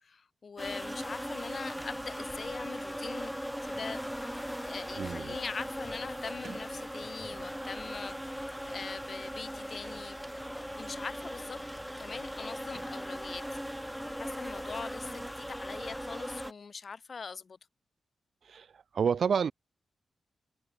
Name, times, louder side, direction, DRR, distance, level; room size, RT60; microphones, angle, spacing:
voice 1, 0.0-3.3 3.7-10.2 10.8-11.6 12.0-13.4 13.8-17.6, left 5 dB, 55° left, 2.3 m, -42 dB
sound 1, 0.6-16.5, equal, ahead, 3.0 m, -39 dB
voice 2, 5.0-5.4 18.4-19.5, right 6 dB, 70° right, 1.0 m, -30 dB
Sliding door, 7.3-7.8 8.7-13.7, right 5 dB, 55° right, 7.1 m, -59 dB
cardioid pair, 85°, 0 cm